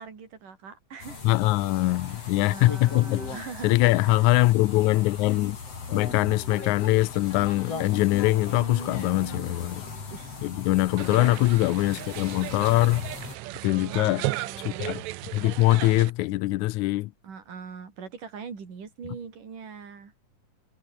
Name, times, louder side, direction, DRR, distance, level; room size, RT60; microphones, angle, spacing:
voice 1, 0.0-1.3 1.9-4.3 8.5-9.6 10.1-10.5 11.0-11.5 13.7-15.1 17.2-20.1, right 6 dB, 65° right, 5.8 m, -42 dB
sound 1, 1.0-13.4, left 4 dB, 45° left, 5.7 m, -39 dB
voice 2, 1.2-3.2 3.6-5.6 5.9-9.8 10.4-13.1 13.6-14.3 14.7-15.0 15.3-17.1, left 18 dB, 80° left, 1.8 m, -23 dB
sound 2, 11.0-16.1, right 17 dB, 85° right, 1.6 m, -35 dB
omnidirectional pair, 4.1 m